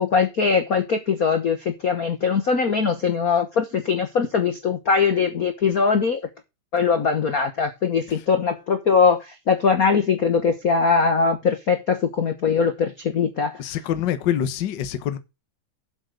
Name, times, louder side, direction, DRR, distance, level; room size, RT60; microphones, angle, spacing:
voice 1, 0.0-6.2 6.7-13.6, left 5 dB, 85° left, 0.7 m, -21 dB
voice 2, 13.6-15.2, left 10 dB, 60° left, 1.2 m, -25 dB
7.9 x 6.3 x 6.5 m
omnidirectional pair, 3.4 m